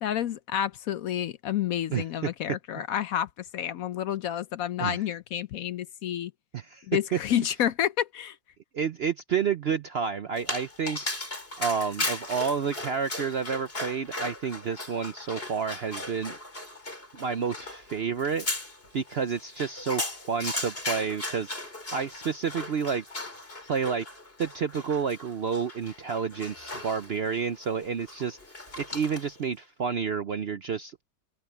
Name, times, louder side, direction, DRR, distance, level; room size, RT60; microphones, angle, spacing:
voice 1, 0.0-6.3 6.9-8.4, left 10 dB, 65° left, 1.0 m, -29 dB
voice 2, 1.9-2.3 4.8-5.0 6.5-6.8 7.1-7.2 8.7-11.0 11.6-16.4 17.1-18.5 18.9-23.0 23.6-24.1 24.4-28.4 28.8-31.0, right 6 dB, 55° right, 0.7 m, -30 dB
Dog, 10.4-29.4, left 2 dB, 35° left, 4.8 m, -37 dB
omnidirectional pair, 1.8 m